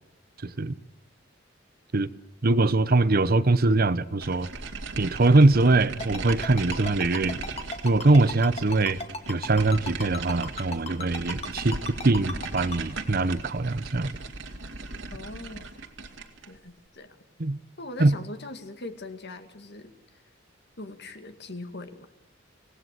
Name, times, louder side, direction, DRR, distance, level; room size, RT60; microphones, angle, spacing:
voice 1, 0.4-0.7 1.9-2.1 2.4-4.5 5.0-7.4 7.8-9.0 9.3-11.8 12.0-14.2 17.4-17.6 18.0-18.1, right 2 dB, 50° right, 0.9 m, -22 dB
sound 1, 4.2-16.6, right 3 dB, 70° right, 2.5 m, -38 dB
Ringtone, 6.0-12.8, left 3 dB, 35° left, 2.1 m, -35 dB
voice 2, 15.1-15.6 16.5-17.2 17.8-20.2 20.8-22.1, left 2 dB, 60° left, 2.2 m, -41 dB
26.0 x 18.5 x 7.6 m
head